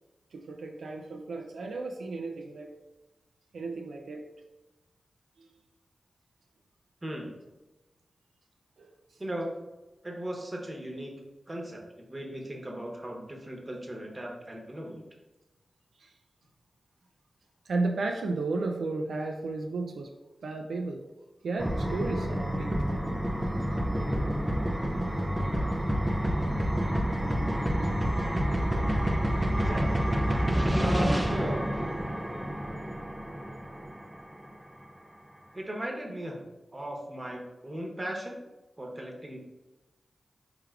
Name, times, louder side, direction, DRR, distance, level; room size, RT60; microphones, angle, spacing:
voice 1, 0.3-2.7 3.5-4.3 5.4-5.5 8.8-9.2 16.0-16.1 17.6-20.1 20.4-21.0 21.4-23.0, right 3 dB, 90° right, 1 dB, 0.3 m, -34 dB
voice 2, 7.0-7.3 9.2-9.6 10.0-11.2 11.5-11.8 12.1-15.0 29.5-30.1 30.8-31.6 35.5-36.4 36.7-38.4 38.8-39.4, right 1 dB, 30° right, 0 dB, 0.9 m, -37 dB
sound 1, 21.6-34.3, equal, 15° right, 0.4 m, -28 dB
4.6 x 3.2 x 2.4 m, 1.1 s
cardioid pair, 50°, 0 cm